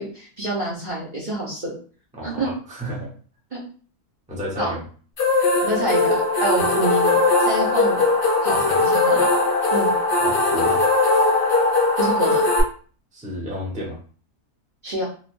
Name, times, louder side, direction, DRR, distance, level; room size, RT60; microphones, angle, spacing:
voice 1, 0.0-1.7 2.2-2.5 3.5-3.6 4.6-4.7 5.6-8.0 8.4-9.3 9.7-9.9 12.0-12.4 14.8-15.0, right 2 dB, 40° right, -5 dB, 0.7 m, -27 dB
voice 2, 2.1-3.1 4.3-4.8 6.6-6.7 8.5-8.8 10.2-10.8 13.1-14.0, equal, 5° right, -5 dB, 0.7 m, -31 dB
sound 1, 5.2-12.6, left 3 dB, 55° left, 0.6 m, -19 dB
3.2 x 2.4 x 2.5 m, 0.42 s
omnidirectional pair, 1.6 m